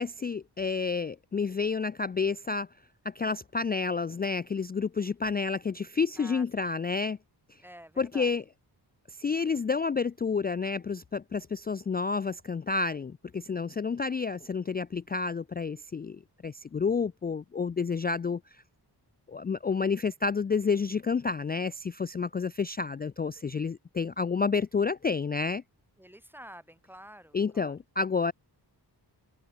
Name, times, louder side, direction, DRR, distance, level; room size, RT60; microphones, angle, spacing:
voice 1, 0.0-2.7 3.1-7.2 8.0-8.4 9.2-18.4 19.3-25.6 27.3-28.3, left 5 dB, 25° left, 0.3 m, -30 dB
voice 2, 6.2-6.8 7.6-8.3 26.0-27.8, equal, 5° right, 5.9 m, -49 dB
wide cardioid pair, 105°, 41 cm